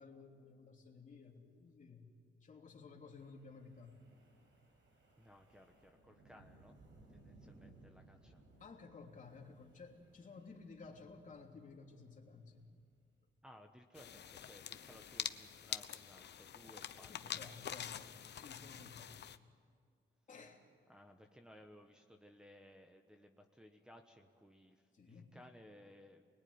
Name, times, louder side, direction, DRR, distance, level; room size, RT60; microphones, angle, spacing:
voice 1, 0.0-2.1 2.4-4.0 8.6-12.7 17.0-19.4 20.3-20.6 24.9-25.4, left 4 dB, 40° left, 1 dB, 3.2 m, -55 dB
Wind, 3.0-13.3, right 2 dB, 80° right, 6.3 m, -65 dB
voice 2, 5.2-8.4 13.4-17.7 20.9-26.2, equal, 5° right, 1 dB, 1.2 m, -60 dB
sound 1, 14.0-19.4, left 9 dB, 60° left, 0.9 m, -46 dB
29.0 x 21.5 x 9.6 m, 2.2 s
wide cardioid pair, 160°, 20 cm